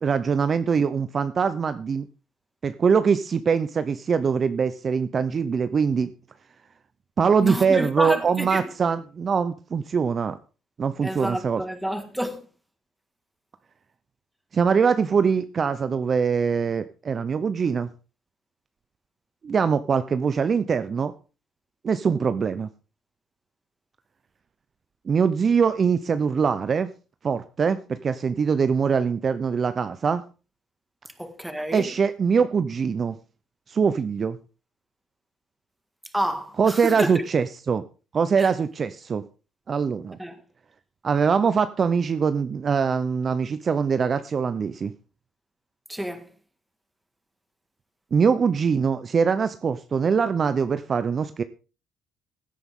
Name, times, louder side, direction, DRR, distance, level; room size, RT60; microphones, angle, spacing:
voice 1, 0.0-2.1 2.6-6.1 7.2-10.4 10.8-11.6 14.5-17.9 19.4-21.1 21.8-22.7 25.1-26.9 27.2-30.2 31.7-33.2 33.7-34.4 36.6-37.8 38.1-39.2 39.7-40.2 41.0-44.9 48.1-51.4, right 6 dB, 35° right, 0.6 m, -23 dB
voice 2, 7.4-8.6 11.0-12.5 31.2-31.9 36.1-37.2 38.4-38.5 40.2-40.4 45.9-46.3, right 1 dB, 5° right, 1.8 m, -29 dB
16.5 x 9.5 x 3.7 m
cardioid pair, 110°, 0 cm